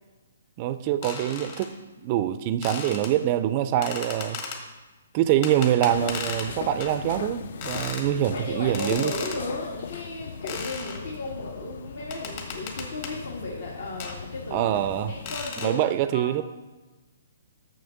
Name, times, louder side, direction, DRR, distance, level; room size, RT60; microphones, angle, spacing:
voice 1, 0.6-1.7 2.0-4.4 5.1-9.1 14.5-15.1 15.6-16.4, right 11 dB, 35° right, 12 dB, 0.3 m, -25 dB
sound 1, 1.0-1.7 2.6-3.1 3.8-4.6 5.4-6.5 6.8-7.0 7.6-8.1 8.7-9.4 10.5-11.0 12.1-13.2 14.0-14.2 15.3-15.8, left 5 dB, 45° left, 1.4 m, -35 dB
sound 2, 5.9-15.5, left 6 dB, 60° left, 0.4 m, -39 dB
voice 2, 8.0-14.7 15.1-15.8 16.1-16.4, left 2 dB, 75° left, -3 dB, 1.7 m, -35 dB
6.7 x 6.4 x 5.7 m, 1.2 s
hypercardioid pair, 145°, 0 cm